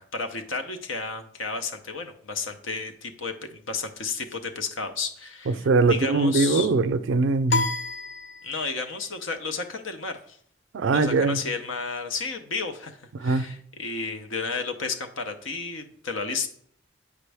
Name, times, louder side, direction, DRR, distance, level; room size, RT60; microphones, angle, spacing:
voice 1, 0.0-5.6 5.9-6.7 8.4-10.4 10.9-16.5, left 4 dB, 85° left, 0.7 m, -32 dB
voice 2, 5.5-7.7 10.7-11.4 13.1-13.5, right 3 dB, 75° right, 0.4 m, -22 dB
sound 1, 7.5-8.9, left 4 dB, 55° left, 0.5 m, -29 dB
8.2 x 5.1 x 3.4 m
head